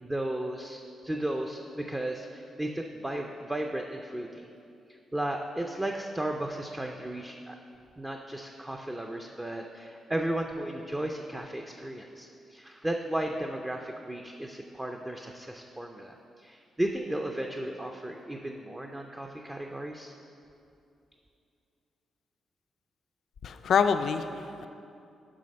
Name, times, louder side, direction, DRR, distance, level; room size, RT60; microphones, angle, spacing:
voice 1, 0.0-4.4 5.1-7.6 8.0-20.2, right 1 dB, 10° right, 2 dB, 0.4 m, -34 dB
voice 2, 23.4-24.7, left 6 dB, 65° left, 9 dB, 0.4 m, -26 dB
7.5 x 5.7 x 5.2 m, 2.6 s
cardioid pair, 125°, 0 cm